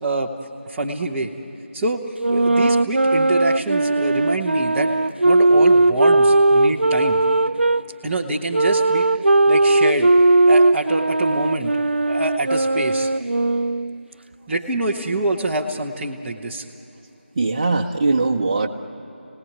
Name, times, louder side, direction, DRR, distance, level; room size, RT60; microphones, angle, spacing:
voice 1, 0.7-1.3 1.7-2.0 2.3-4.9 5.2-7.2 8.0-9.1 9.5-10.1 10.5-11.7 12.1-13.1 14.5-16.6, right 2 dB, 5° right, -5 dB, 0.9 m, -25 dB
sound 1, 2.2-7.8 8.5-14.0, right 2 dB, 60° right, 0.5 m, -18 dB
voice 2, 17.3-18.7, right 3 dB, 25° right, 2 dB, 1.2 m, -20 dB
28.5 x 18.5 x 9.5 m, 2.9 s
figure-of-eight pair, 165°, 7 cm